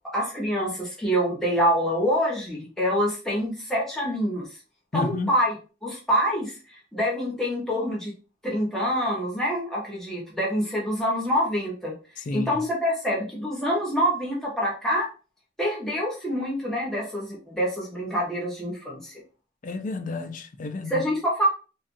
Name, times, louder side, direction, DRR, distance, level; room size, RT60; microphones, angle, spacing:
voice 1, 0.1-4.6 4.9-5.5 5.8-6.6 6.9-8.1 8.4-11.9 12.3-15.1 15.6-19.2 20.9-21.5, equal, 5° left, 1.0 m, -26 dB
voice 2, 4.9-5.3 12.2-12.5 19.6-21.1, left 3 dB, 45° left, 0.4 m, -31 dB
2.5 x 2.3 x 2.5 m
head